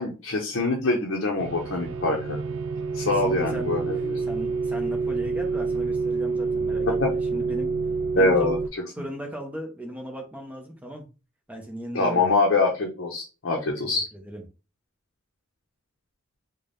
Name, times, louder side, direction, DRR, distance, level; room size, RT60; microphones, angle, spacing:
voice 1, 0.0-2.4 2.9-4.2 7.0-7.1 8.1-8.6 11.9-14.0, left 2 dB, 60° left, 0 dB, 0.7 m, -24 dB
sound 1, 1.4-8.7, right 4 dB, 75° right, 0.4 m, -28 dB
voice 2, 3.0-3.7 4.2-7.7 8.1-8.6 8.9-11.1 11.5-12.3 14.2-14.4, equal, 5° right, 1 dB, 0.7 m, -37 dB
3.9 x 2.2 x 3.4 m, 0.31 s
head